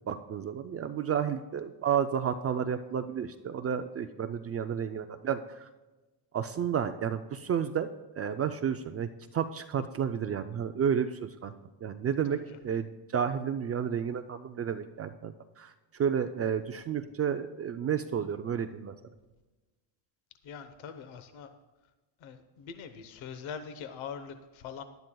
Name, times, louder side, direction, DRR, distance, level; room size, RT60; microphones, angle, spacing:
voice 1, 0.1-5.7 6.3-7.9 8.2-11.5 11.8-18.9, right 8 dB, 30° right, 8 dB, 0.4 m, -31 dB
voice 2, 20.4-21.5 22.2-24.8, left 6 dB, 70° left, 9 dB, 1.1 m, -43 dB
18.5 x 12.0 x 2.3 m, 1.2 s
cardioid pair, 150°, 49 cm